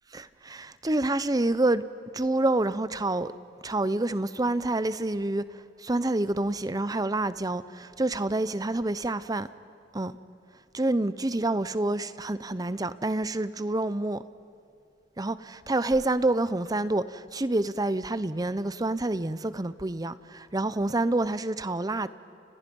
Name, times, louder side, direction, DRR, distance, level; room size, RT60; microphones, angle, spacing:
voice 1, 0.1-1.8 2.1-3.3 3.6-5.4 5.8-9.5 9.9-10.2 10.7-14.2 15.2-22.1, right 2 dB, 20° right, 0.7 m, -27 dB
29.5 x 29.5 x 5.4 m
head